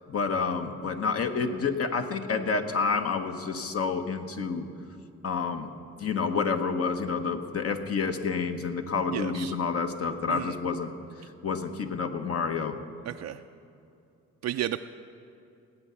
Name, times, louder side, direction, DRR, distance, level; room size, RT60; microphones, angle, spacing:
voice 1, 0.1-4.7 5.2-5.7 6.0-10.9 11.4-12.8, left 5 dB, 50° left, 6 dB, 1.1 m, -29 dB
voice 2, 9.1-9.5 10.3-10.6 13.1-13.4 14.4-14.8, right 12 dB, 60° right, 7 dB, 0.4 m, -32 dB
18.5 x 8.3 x 5.7 m, 2.6 s
cardioid pair, 90°, 30 cm